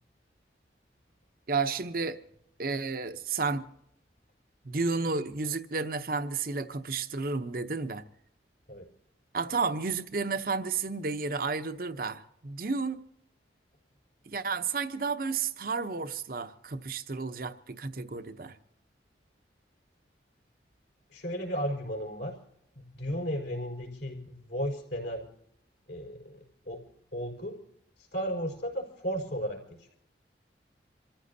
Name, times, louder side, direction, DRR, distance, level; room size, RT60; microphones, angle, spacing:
voice 1, 1.5-2.2 2.6-3.6 4.6-8.0 9.3-13.0 14.3-18.6, right 4 dB, 55° right, 0.8 m, -32 dB
voice 2, 21.1-22.4 22.7-25.3 25.9-26.8 27.1-27.6 28.1-29.6, equal, 70° left, 4.8 m, -34 dB
27.5 x 14.5 x 2.8 m
head